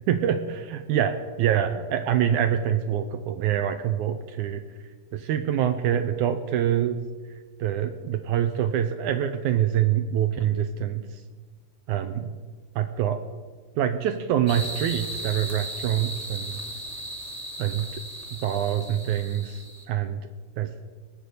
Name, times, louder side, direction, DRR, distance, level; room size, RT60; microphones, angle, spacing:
voice 1, 0.1-4.6 5.1-7.0 7.6-11.0 11.9-12.3 12.8-13.2 13.8-16.6 17.6-18.0 18.4-19.6 19.9-20.2 20.6-20.7, right 10 dB, 80° right, 9 dB, 1.8 m, -25 dB
sound 1, 14.5-19.8, right 1 dB, 20° right, 0.7 m, -36 dB
19.0 x 6.5 x 8.4 m, 1.4 s
omnidirectional pair, 4.3 m